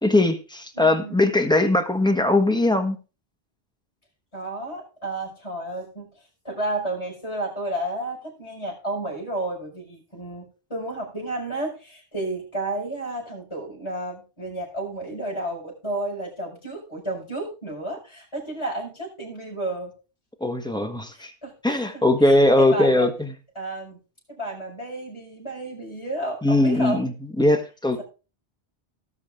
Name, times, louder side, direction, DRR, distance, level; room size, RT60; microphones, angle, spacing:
voice 1, 0.0-3.0 20.4-21.3 21.6-23.3 26.4-28.0, left 2 dB, 5° left, 1.4 m, -20 dB
voice 2, 0.8-1.3 4.3-6.1 6.4-19.9 21.1-23.1 23.6-24.0 24.3-27.1, right 1 dB, 25° left, 5.8 m, -32 dB
19.0 x 6.4 x 3.7 m
omnidirectional pair, 1.1 m